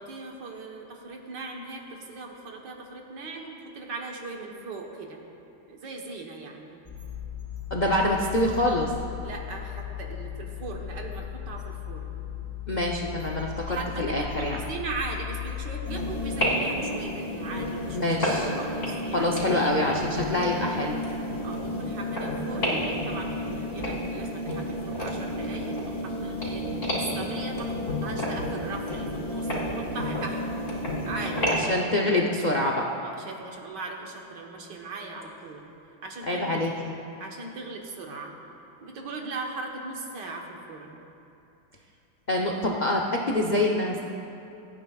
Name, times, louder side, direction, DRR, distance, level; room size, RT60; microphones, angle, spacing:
voice 1, 0.0-5.2 5.7-6.8 9.2-12.2 13.6-19.7 21.4-26.6 26.9-30.5 31.1-32.1 33.0-35.6 36.0-36.6 37.2-38.3 38.8-41.0, right 3 dB, 65° right, 1 dB, 1.8 m, -38 dB
sound 1, 6.8-16.4, left 10 dB, 15° left, 3.2 m, -37 dB
voice 2, 7.7-8.9 12.7-14.6 17.9-18.5 19.1-21.0 31.5-32.9 36.3-36.9 42.3-44.1, left 1 dB, 70° left, -1 dB, 0.4 m, -26 dB
sound 2, 15.8-31.6, equal, 40° left, 3.2 m, -30 dB
27.5 x 9.3 x 2.4 m, 2.8 s
omnidirectional pair, 2.1 m